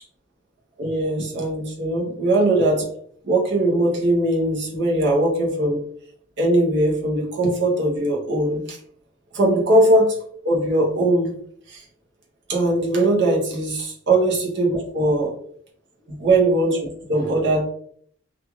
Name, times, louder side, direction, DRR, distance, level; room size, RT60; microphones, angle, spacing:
voice 1, 0.8-2.8 3.2-5.8 6.4-8.8 9.3-10.1 10.4-11.3 11.7-11.8 12.5-15.3 16.2-17.6, right 1 dB, 60° right, -2 dB, 0.8 m, -20 dB
2.5 x 2.3 x 2.9 m, 0.63 s
head